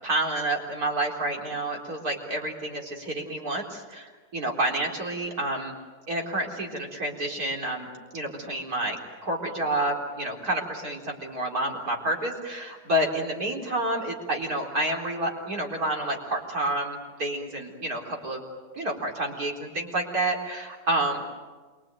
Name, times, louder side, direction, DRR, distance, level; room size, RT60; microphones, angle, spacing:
voice 1, 0.0-5.7 6.1-18.4 18.7-21.3, right 1 dB, 55° right, 0 dB, 4.5 m, -29 dB
27.5 x 24.0 x 9.1 m, 1.4 s
omnidirectional pair, 1.9 m